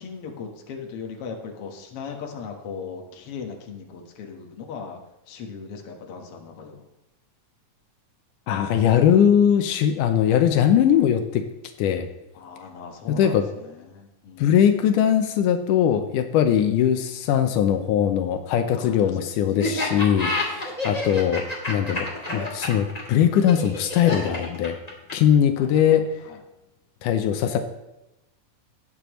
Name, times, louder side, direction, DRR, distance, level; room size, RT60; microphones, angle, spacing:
voice 1, 0.0-5.0 5.3-6.8 12.3-14.6 18.7-19.2 25.6-26.4, left 5 dB, 55° left, 3 dB, 2.1 m, -38 dB
voice 2, 8.5-11.4 11.8-12.1 13.1-13.5 14.4-24.8 25.1-26.1 27.0-27.6, left 9 dB, 80° left, 7 dB, 2.3 m, -20 dB
Laughter, 19.6-25.3, left 2 dB, 15° left, 1.8 m, -28 dB
19.0 x 8.5 x 3.1 m, 0.93 s
omnidirectional pair, 3.6 m